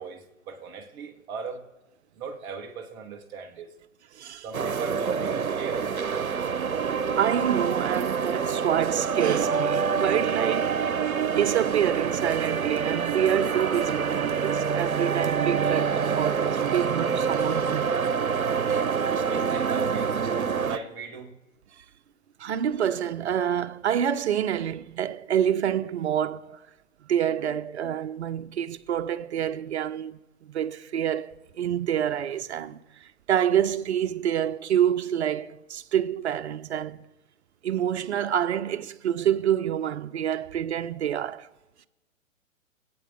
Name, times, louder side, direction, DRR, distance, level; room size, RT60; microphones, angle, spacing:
voice 1, 0.0-1.7 2.2-3.7 4.4-5.9 19.1-21.4, right 5 dB, 10° right, 0.5 m, -39 dB
voice 2, 4.1-4.5 7.2-15.9 16.2-17.9 22.4-26.6 27.1-37.0 37.6-41.5, right 10 dB, 55° right, 0.7 m, -27 dB
sound 1, 4.5-20.8, right 6 dB, 85° right, 0.8 m, -26 dB
23.5 x 8.7 x 3.7 m
figure-of-eight pair, 120°, 41 cm